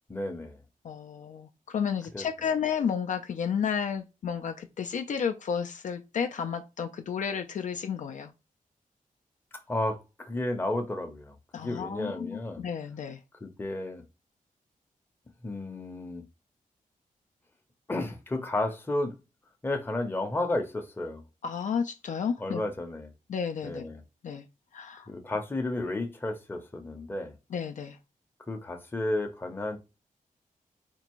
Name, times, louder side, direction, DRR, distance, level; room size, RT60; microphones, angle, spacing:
voice 1, 0.1-0.6 2.1-2.3 9.7-12.6 13.4-14.0 15.4-16.3 17.9-19.2 19.6-21.2 22.4-23.1 23.6-24.0 25.1-27.3 28.5-29.8, left 2 dB, 15° left, 0.7 m, -32 dB
voice 2, 0.8-8.3 11.5-13.2 21.4-22.6 23.3-23.9 24.2-24.4 24.7-25.1 27.5-28.0, left 7 dB, 60° left, 0.4 m, -32 dB
4.4 x 2.5 x 2.9 m
wide cardioid pair, 170°, 15 cm